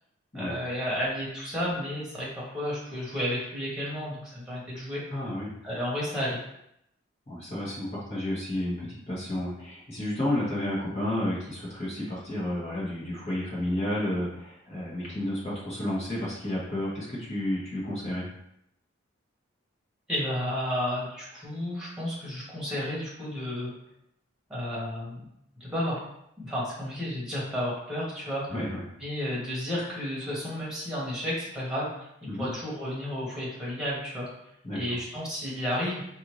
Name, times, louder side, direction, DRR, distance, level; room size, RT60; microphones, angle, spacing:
voice 1, 0.3-5.0 5.6-6.4 20.1-23.7 24.5-25.2 25.5-26.0 26.4-28.5 29.0-34.3 34.7-36.0, equal, 5° right, -7 dB, 1.5 m, -32 dB
voice 2, 5.1-5.5 7.3-18.3 28.5-28.8 32.3-32.5 34.6-34.8, left 1 dB, 35° left, -7 dB, 1.6 m, -31 dB
4.8 x 2.7 x 3.2 m, 0.77 s
head